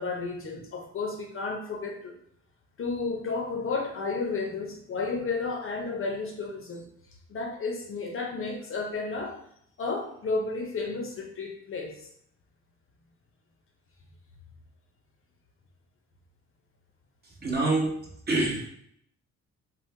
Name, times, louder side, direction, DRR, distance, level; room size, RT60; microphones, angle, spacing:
voice 1, 0.0-2.2 2.8-6.9 7.3-9.4 9.8-12.1, left 3 dB, 45° left, 2 dB, 0.6 m, -32 dB
voice 2, 17.2-18.0 18.3-18.7, right 2 dB, 30° right, -2 dB, 0.9 m, -26 dB
3.0 x 2.1 x 3.2 m, 0.68 s
cardioid pair, 90°, 30 cm